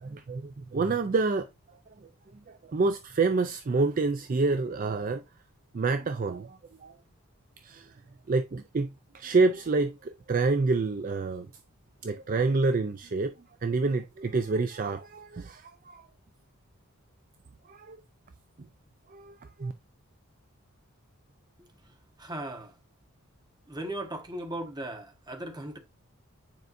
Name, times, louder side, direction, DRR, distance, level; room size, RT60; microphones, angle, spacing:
voice 1, 0.0-1.5 1.9-2.0 2.6-5.2 5.7-6.9 7.6-7.9 8.3-11.5 12.0-13.3 13.6-16.0 17.7-18.0 19.1-19.7, right 3 dB, 40° right, 0.4 m, -28 dB
voice 2, 21.6-22.7 23.7-25.8, right 1 dB, 20° right, 1.1 m, -38 dB
9.2 x 4.6 x 2.6 m
head